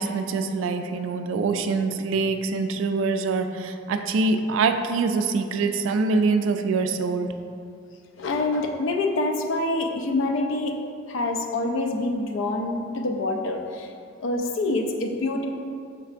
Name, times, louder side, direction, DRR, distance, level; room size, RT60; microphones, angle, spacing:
voice 1, 0.0-7.3, right 4 dB, 75° right, 7 dB, 0.3 m, -24 dB
voice 2, 8.2-10.8 11.1-13.9 14.2-15.5, left 2 dB, 70° left, 3 dB, 0.4 m, -26 dB
5.4 x 3.3 x 2.5 m, 2.4 s
head